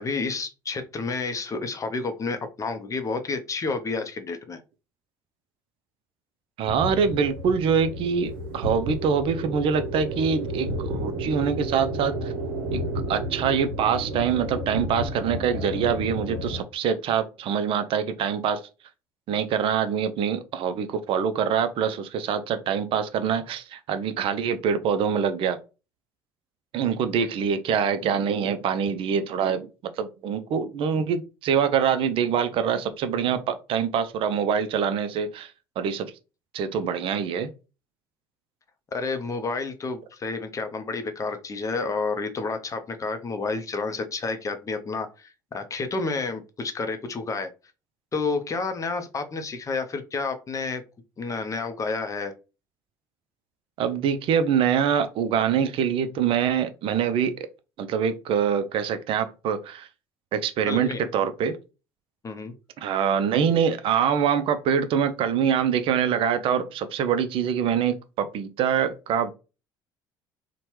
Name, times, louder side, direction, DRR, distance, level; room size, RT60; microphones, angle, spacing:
voice 1, 0.0-4.6 27.2-27.3 38.9-47.5 48.1-50.8 51.2-52.3 60.7-61.0 62.2-62.5, left 4 dB, 30° left, 0.5 m, -30 dB
voice 2, 6.6-12.3 12.7-12.8 13.1-18.6 19.3-25.6 26.7-35.5 35.8-36.1 36.5-37.5 53.8-57.5 57.8-59.9 60.3-61.6 62.8-69.3, right 7 dB, 55° right, 0.4 m, -24 dB
sound 1, 6.7-16.6, right 1 dB, 85° right, 0.7 m, -32 dB
2.8 x 2.1 x 3.1 m
hypercardioid pair, 65°, 11 cm